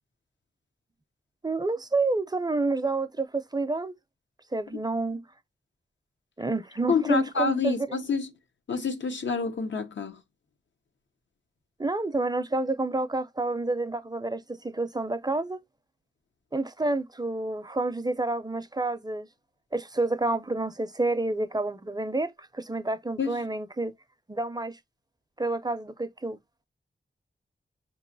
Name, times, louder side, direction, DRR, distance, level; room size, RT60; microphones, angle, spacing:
voice 1, 1.4-3.9 4.5-5.2 6.4-8.0 11.8-15.6 16.5-19.3 19.7-23.9 24.3-24.8 25.4-26.4, right 2 dB, 20° right, 0.4 m, -29 dB
voice 2, 6.9-8.3 8.7-10.2 23.2-23.3, left 5 dB, 85° left, 0.7 m, -28 dB
5.1 x 3.0 x 2.5 m
wide cardioid pair, 70°, 19 cm